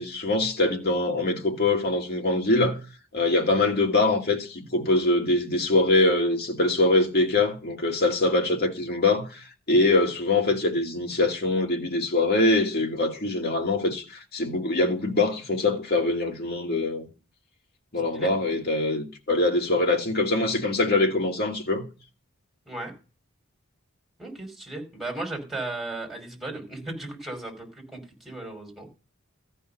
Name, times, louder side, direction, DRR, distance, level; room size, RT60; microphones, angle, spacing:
voice 1, 0.0-2.8 3.1-17.1 17.9-21.9, left 2 dB, 50° left, 2.6 m, -23 dB
voice 2, 24.2-28.9, right 2 dB, ahead, 5.1 m, -36 dB
14.5 x 5.6 x 6.5 m
head